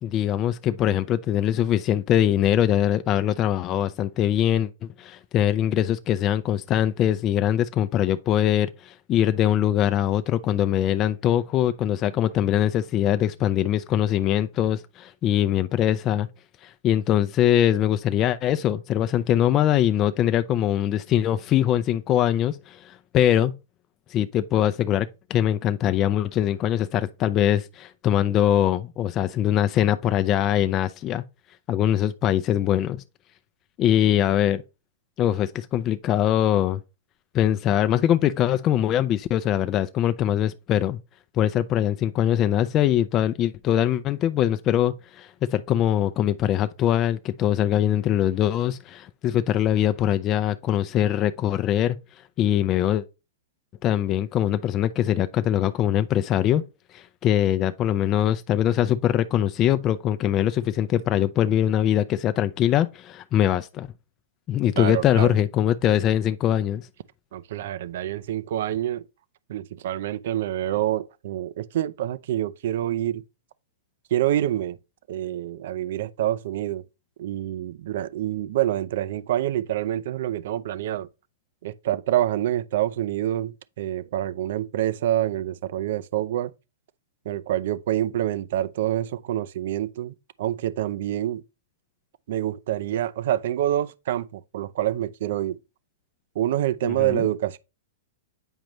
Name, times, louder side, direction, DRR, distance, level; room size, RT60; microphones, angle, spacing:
voice 1, 0.0-16.3 16.6-23.5 24.1-31.2 31.7-33.0 33.8-34.6 35.2-36.8 37.3-41.0 41.3-52.0 52.4-53.0 53.8-56.6 56.9-63.9 64.5-66.9 96.8-97.3, left 11 dB, 30° left, 0.5 m, -22 dB
voice 2, 64.8-65.4 67.3-69.0 69.5-73.2 74.1-74.8 75.1-76.8 77.2-81.1 81.6-86.5 87.3-91.4 92.3-95.6 96.4-97.6, right 12 dB, 65° right, 0.6 m, -27 dB
9.0 x 5.1 x 3.1 m
hypercardioid pair, 130°, 0 cm